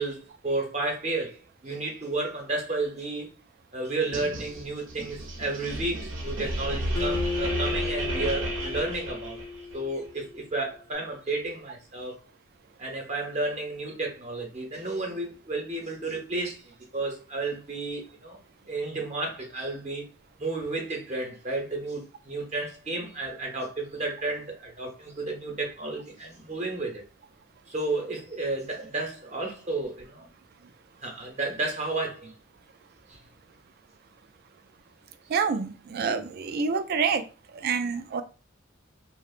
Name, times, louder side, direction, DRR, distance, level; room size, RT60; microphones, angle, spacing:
voice 1, 0.0-3.3 3.7-9.4 9.7-12.2 12.8-18.4 18.7-20.0 20.4-27.0 27.7-30.3 31.0-32.3 33.1-33.2, right 2 dB, 35° right, 0.7 m, -32 dB
sound 1, 4.1-9.8, right 1 dB, 80° right, 0.6 m, -33 dB
Acoustic guitar, 7.0-10.4, left 4 dB, 50° left, 0.4 m, -34 dB
voice 2, 35.3-37.2 37.5-38.2, right 5 dB, 50° right, 0.3 m, -27 dB
2.8 x 2.0 x 2.4 m
head